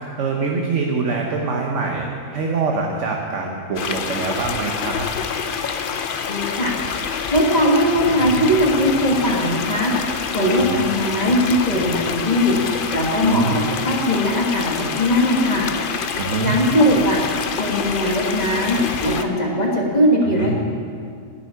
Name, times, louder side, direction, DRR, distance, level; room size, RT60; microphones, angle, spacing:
voice 1, 0.2-5.1 8.3-8.5 10.5-10.7 13.2-13.6 16.2-16.6 20.2-20.6, right 4 dB, 55° right, 0 dB, 1.3 m, -24 dB
sound 1, 3.8-19.2, left 6 dB, 55° left, 0.6 m, -27 dB
voice 2, 6.3-6.7 7.3-9.9 10.3-12.5 12.9-15.7 16.4-17.2 17.6-20.6, equal, 30° left, -2 dB, 1.6 m, -19 dB
11.0 x 7.3 x 9.5 m, 2.2 s
omnidirectional pair, 1.6 m